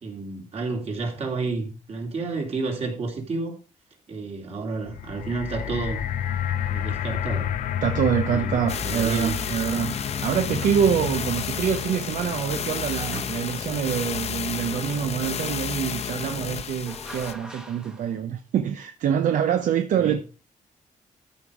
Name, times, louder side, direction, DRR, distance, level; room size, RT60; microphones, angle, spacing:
voice 1, 0.0-3.5 4.1-6.0 6.7-7.5 8.3-9.4 19.9-20.2, right 3 dB, 50° right, 3.0 m, -30 dB
sound 1, 4.8-15.1 15.8-15.9, left 10 dB, 80° left, 0.6 m, -32 dB
voice 2, 7.8-10.0 10.2-20.2, right 8 dB, 75° right, 0.7 m, -25 dB
sound 2, 8.7-17.3, left 7 dB, 50° left, 0.8 m, -31 dB
sound 3, 13.1-13.9 16.4-18.2, right 1 dB, 5° right, 1.0 m, -42 dB
13.5 x 5.4 x 4.9 m
cardioid pair, 125°, 13 cm